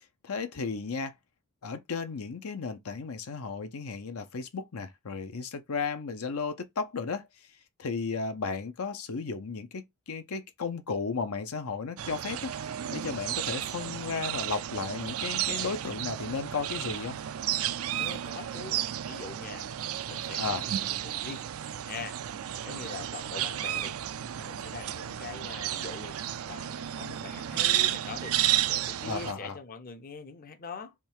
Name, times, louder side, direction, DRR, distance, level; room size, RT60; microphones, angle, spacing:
voice 1, 0.2-1.1 1.6-7.3 7.8-9.8 10.1-12.5 12.9-17.2 20.4-20.6 29.0-29.6, left 4 dB, 80° left, 0.7 m, -34 dB
sound 1, 12.0-29.3, right 11 dB, 70° right, 0.4 m, -32 dB
voice 2, 18.0-19.7 20.1-21.5 21.8-22.2 22.6-24.0 24.4-26.2 26.5-28.4 28.7-30.9, left 4 dB, 40° left, 0.6 m, -43 dB
3.6 x 3.2 x 4.5 m
head